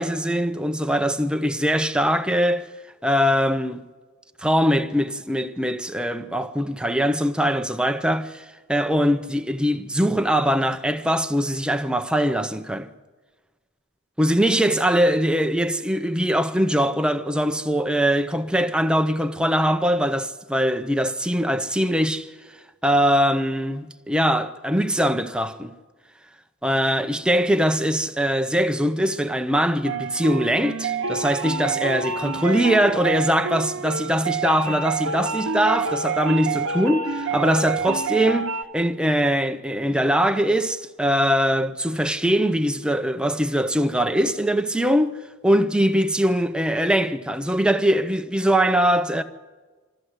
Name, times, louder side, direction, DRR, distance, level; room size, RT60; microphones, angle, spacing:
voice 1, 0.0-2.7 3.0-3.8 4.4-12.9 14.2-22.3 22.8-25.7 26.6-45.2 45.4-49.2, equal, 5° right, 0.6 m, -22 dB
sound 1, 29.8-38.6, right 4 dB, 60° right, 0.9 m, -27 dB
25.5 x 13.0 x 7.9 m
head